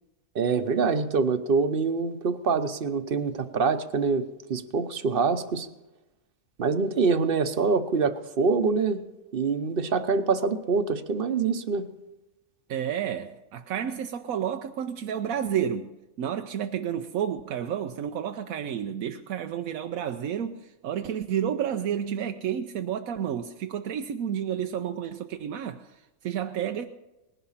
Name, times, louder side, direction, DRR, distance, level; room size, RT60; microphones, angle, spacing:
voice 1, 0.3-5.7 6.6-9.0 9.3-11.9, right 4 dB, 45° right, 0.9 m, -25 dB
voice 2, 12.7-26.9, right 9 dB, 90° right, 1.1 m, -31 dB
19.5 x 11.0 x 5.7 m
omnidirectional pair, 1.4 m